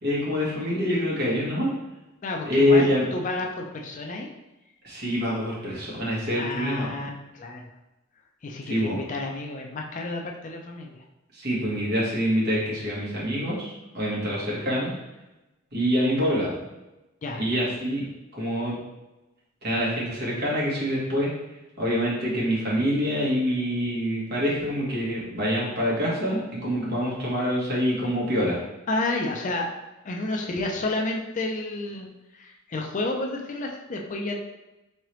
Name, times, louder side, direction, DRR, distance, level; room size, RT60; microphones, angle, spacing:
voice 1, 0.0-1.7 2.4-3.0 4.8-6.9 8.7-9.0 11.3-14.9 15.7-16.5 17.3-18.0 18.3-18.7 19.6-21.3 21.8-28.6, equal, 50° right, -6 dB, 1.3 m, -25 dB
voice 2, 2.2-4.3 6.3-7.6 8.4-11.0 17.2-17.4 28.9-29.7 30.0-32.1 32.3-34.4, left 2 dB, 40° left, 2 dB, 0.4 m, -31 dB
3.7 x 3.1 x 3.1 m, 1.0 s
head